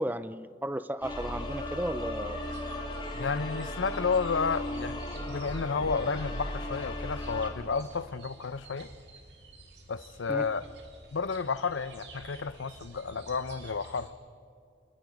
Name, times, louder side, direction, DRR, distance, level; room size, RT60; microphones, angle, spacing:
voice 1, 0.0-2.4 10.3-10.5, right 1 dB, 10° right, 0.5 m, -34 dB
sound 1, 1.0-7.5, left 1 dB, 25° left, 2.9 m, -36 dB
sound 2, 2.4-14.1, right 2 dB, 65° right, 2.7 m, -52 dB
voice 2, 3.1-8.9 9.9-10.7 11.1-14.1, left 5 dB, 90° left, 0.7 m, -31 dB
28.5 x 20.5 x 5.3 m
head